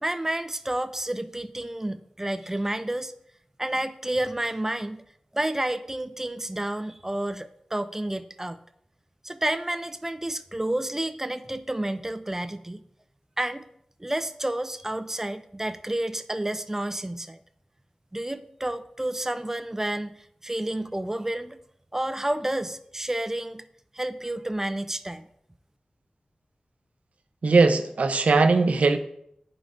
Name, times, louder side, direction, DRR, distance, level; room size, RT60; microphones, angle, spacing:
voice 1, 0.0-3.1 3.6-5.0 5.3-8.6 9.2-12.8 13.4-13.6 14.0-17.4 18.1-21.6 21.9-23.6 23.9-25.2, right 1 dB, 20° right, 11 dB, 0.4 m, -30 dB
voice 2, 27.4-29.0, right 3 dB, 85° right, 7 dB, 0.6 m, -19 dB
11.0 x 4.8 x 2.5 m, 0.71 s
wide cardioid pair, 85°, 2 cm